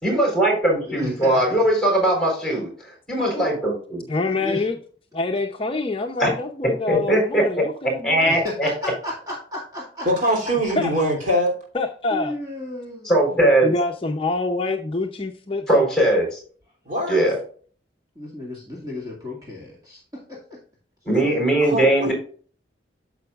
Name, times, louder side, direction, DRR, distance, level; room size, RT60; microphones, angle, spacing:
voice 1, 0.0-2.7 3.1-4.0 6.2-6.3 6.9-7.6 8.0-8.7 13.0-13.7 15.7-16.4 17.1-17.4 21.1-22.1, right 1 dB, 5° left, 0 dB, 4.2 m, -20 dB
voice 2, 0.8-1.7 4.4-4.7 8.2-10.1 12.1-13.1 18.2-20.6, left 1 dB, 20° right, -4 dB, 2.2 m, -33 dB
voice 3, 4.1-4.7 5.1-8.4 10.8-10.9 11.7-12.3 13.3-15.9, left 3 dB, 30° left, 3 dB, 0.6 m, -26 dB
voice 4, 10.0-11.5 16.9-17.3 21.1-21.3 21.6-22.1, equal, 45° right, -1 dB, 3.1 m, -23 dB
9.3 x 7.0 x 2.4 m, 0.44 s
head